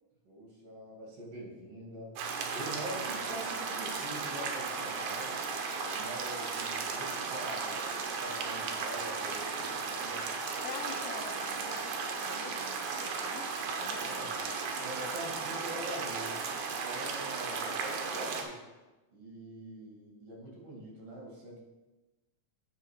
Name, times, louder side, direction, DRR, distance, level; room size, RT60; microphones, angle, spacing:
voice 1, 0.2-2.2 2.5-5.3 5.8-10.3 14.0-14.3 14.8-18.6 19.1-21.6, right 1 dB, 50° right, -3 dB, 3.0 m, -44 dB
sound 1, 2.2-18.4, right 5 dB, 70° right, 2.1 m, -35 dB
voice 2, 10.6-11.9 12.2-13.5 13.8-14.5, left 8 dB, 80° left, 7 dB, 1.9 m, -46 dB
7.9 x 5.7 x 4.7 m, 1.1 s
omnidirectional pair, 3.7 m